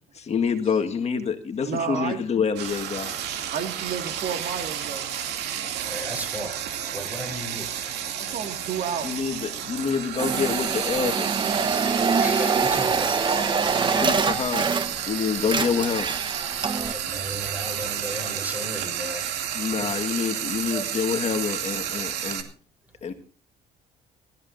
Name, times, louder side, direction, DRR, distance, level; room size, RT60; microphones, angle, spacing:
voice 1, 0.1-3.1 9.0-11.3 13.9-14.7 15.1-16.1 19.5-22.5 23.0-23.1, left 6 dB, 40° left, 6 dB, 1.6 m, -27 dB
voice 2, 1.6-2.2 3.5-5.1 7.5-7.7 8.1-9.5, right 7 dB, 60° right, 5 dB, 2.1 m, -31 dB
Frying (food), 2.6-22.4, right 9 dB, 80° right, 2.5 m, -31 dB
voice 3, 5.8-6.6 6.9-7.7 12.2-13.1 16.5-19.2 19.8-19.9 20.7-20.9, equal, 10° right, 8 dB, 4.1 m, -35 dB
sound 1, 10.2-15.1 15.4-16.9, right 5 dB, 30° right, 1.0 m, -25 dB
23.0 x 13.5 x 2.6 m, 0.39 s
cardioid pair, 110°, 17 cm